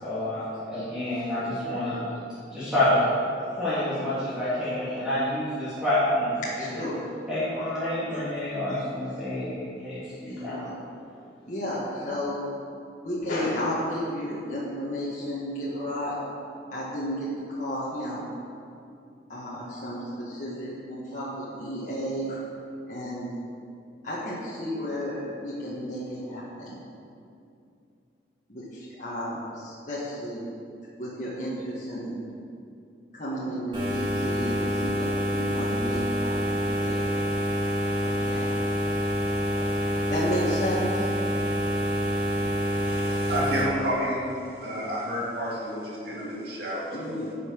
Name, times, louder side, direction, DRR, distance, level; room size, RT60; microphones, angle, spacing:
voice 1, 0.0-2.0 2.5-3.0 3.6-6.3 6.6-6.7 7.3-10.6, left 1 dB, 5° right, -13 dB, 2.7 m, -28 dB
voice 2, 6.4-7.0 8.7-8.8 10.3-10.8 11.5-12.4 13.0-16.2 16.7-18.2 19.3-22.4 22.9-23.3 24.0-26.8 28.5-30.4 31.0-32.2 33.1-35.1 35.4-37.1 38.0-38.6 40.1-41.1 44.6-44.7 46.9-47.3, equal, 40° left, -8 dB, 1.8 m, -32 dB
sound 1, 33.7-43.6, equal, 25° right, 2.0 m, -27 dB
voice 3, 42.8-44.3 44.6-47.2, equal, 60° right, -5 dB, 2.5 m, -30 dB
11.0 x 5.8 x 6.7 m, 2.5 s
head